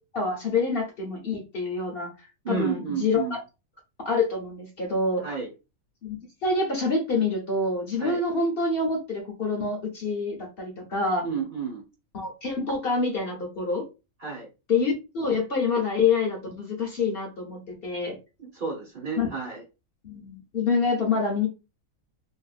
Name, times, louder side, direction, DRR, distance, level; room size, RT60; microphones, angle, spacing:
voice 1, 0.1-3.2 4.0-5.2 6.0-11.2 12.1-13.9 14.7-18.2 19.2-19.3 20.0-21.5, left 4 dB, 50° left, 0 dB, 0.8 m, -26 dB
voice 2, 2.4-3.3 5.2-5.5 8.0-8.2 11.2-11.8 14.2-14.5 18.4-19.6, right 6 dB, 45° right, -1 dB, 0.9 m, -31 dB
3.0 x 2.4 x 2.4 m, 0.28 s
omnidirectional pair, 1.4 m